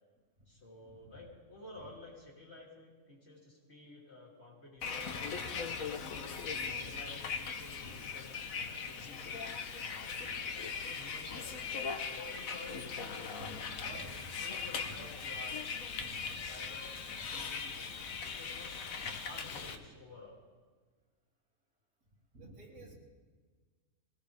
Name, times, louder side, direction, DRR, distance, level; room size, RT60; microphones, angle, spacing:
voice 1, 0.5-5.9 6.5-10.5 10.8-13.3 13.8-18.8 19.2-20.4, left 2 dB, 50° left, -3 dB, 3.5 m, -53 dB
Bus, 4.8-19.8, left 5 dB, 85° left, 1.4 m, -40 dB
voice 2, 5.3-6.3 6.6-6.9 7.8-7.9 13.4-14.3 14.8-15.0 15.3-15.4 16.0-16.4 16.7-16.8 19.0-19.2 22.3-22.9, right 1 dB, 75° right, -2 dB, 3.3 m, -53 dB
22.5 x 18.0 x 3.5 m, 1.5 s
omnidirectional pair, 1.4 m